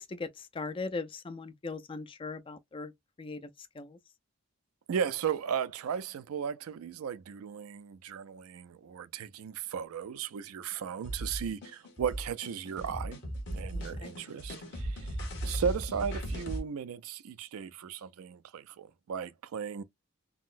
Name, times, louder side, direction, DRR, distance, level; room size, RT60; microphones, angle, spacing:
voice 1, 0.0-2.9 3.2-4.0 14.0-14.1, left 3 dB, 25° left, 0.3 m, -39 dB
voice 2, 4.9-13.2 13.5-15.1 15.4-19.8, right 7 dB, 75° right, 0.4 m, -36 dB
sound 1, 11.0-16.6, right 1 dB, 50° left, 1.2 m, -37 dB
3.7 x 2.0 x 2.4 m
head